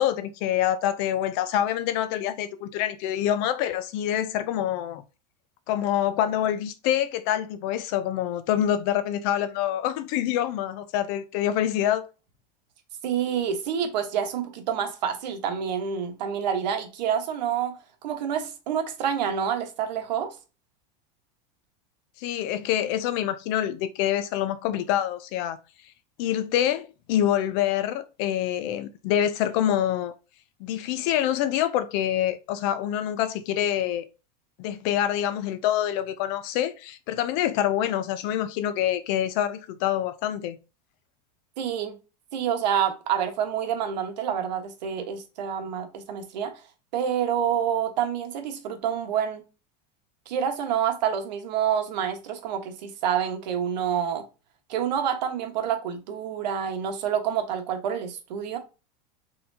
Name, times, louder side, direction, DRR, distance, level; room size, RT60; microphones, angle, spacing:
voice 1, 0.0-5.0 5.7-12.0 22.2-25.6 26.2-30.1 30.6-34.1 34.6-40.6, left 11 dB, 35° left, 0.3 m, -26 dB
voice 2, 13.0-17.8 18.0-20.3 41.6-42.0 42.3-46.5 46.9-49.4 50.3-54.3 54.7-58.6, right 8 dB, 90° right, 1.2 m, -27 dB
4.3 x 3.8 x 2.7 m
supercardioid pair, 180°, 21 cm